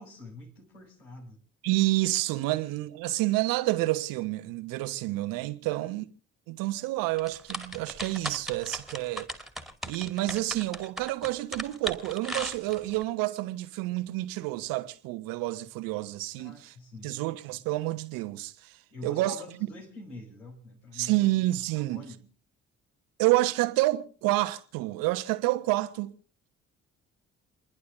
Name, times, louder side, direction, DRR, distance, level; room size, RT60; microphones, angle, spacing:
voice 1, 0.0-1.4 5.6-6.0 16.4-17.2 18.9-21.3 21.7-22.3, left 2 dB, 85° left, 4.9 m, -46 dB
voice 2, 1.6-6.0 6.5-9.3 9.9-16.7 17.0-18.8 19.0-19.4 20.9-22.0 23.2-26.1, right 18 dB, 65° right, 1.3 m, -29 dB
sound 1, 7.2-13.0, right 1 dB, ahead, 2.1 m, -37 dB
29.5 x 11.0 x 3.6 m
figure-of-eight pair, 45°, 36 cm